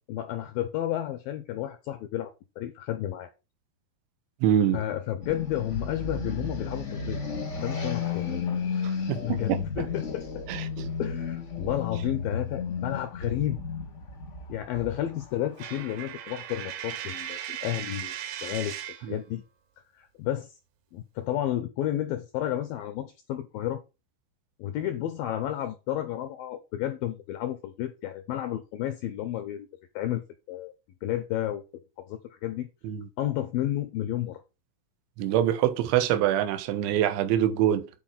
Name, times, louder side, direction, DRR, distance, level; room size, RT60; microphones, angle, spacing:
voice 1, 0.1-3.3 4.7-7.2 7.6-8.3 8.7-10.4 11.0-13.6 14.5-18.2 18.4-18.8 19.1-19.4 20.0-20.6 20.9-23.8 24.6-29.7 30.0-30.7 31.0-31.6 32.0-32.7 33.2-34.4, left 12 dB, 85° left, 2.1 m, -32 dB
voice 2, 4.4-4.8 8.8-9.9 10.5-10.9 19.0-19.2 32.8-33.0 35.2-37.9, right 11 dB, 85° right, 3.2 m, -25 dB
sound 1, 5.2-16.0, left 5 dB, 65° left, 0.7 m, -33 dB
Coin (dropping), 15.6-19.1, right 10 dB, 70° right, 3.0 m, -37 dB
9.3 x 4.4 x 5.8 m
omnidirectional pair, 5.1 m